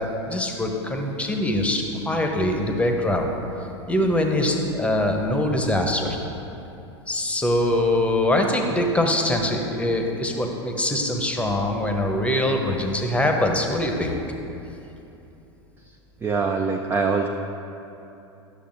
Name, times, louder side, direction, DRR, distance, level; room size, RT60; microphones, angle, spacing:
voice 1, 0.0-3.3 3.9-6.2 7.1-14.1, left 1 dB, 10° left, 3 dB, 0.8 m, -23 dB
voice 2, 16.2-17.3, right 5 dB, 15° right, 2 dB, 0.3 m, -23 dB
11.0 x 6.7 x 2.6 m, 2.9 s
figure-of-eight pair, 90°, 15 cm